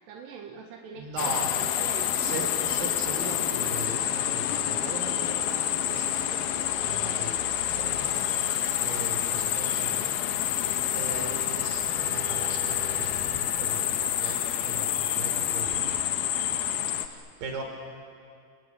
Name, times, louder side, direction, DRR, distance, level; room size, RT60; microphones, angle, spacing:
voice 1, 0.1-2.5, right 6 dB, 85° right, 1 dB, 3.7 m, -43 dB
voice 2, 0.9-1.5 2.2-6.5 6.8-7.4 7.6-8.5 8.8-10.6 10.9-16.0 17.0-17.6, right 3 dB, 55° right, 3 dB, 5.4 m, -39 dB
sound 1, 1.2-17.1, left 11 dB, 70° left, 2.8 m, -28 dB
sound 2, 3.6-14.0, left 1 dB, 40° left, 1.7 m, -47 dB
29.5 x 21.5 x 9.4 m, 2.3 s
omnidirectional pair, 4.7 m